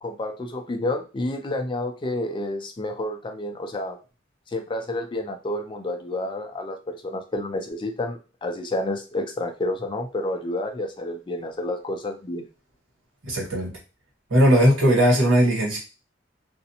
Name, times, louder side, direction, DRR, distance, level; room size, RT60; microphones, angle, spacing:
voice 1, 0.0-4.0 4.5-12.4, left 1 dB, 25° left, 4 dB, 0.3 m, -29 dB
voice 2, 13.2-13.7 14.3-15.8, equal, 85° right, -2 dB, 1.3 m, -18 dB
2.5 x 2.0 x 2.7 m, 0.32 s
head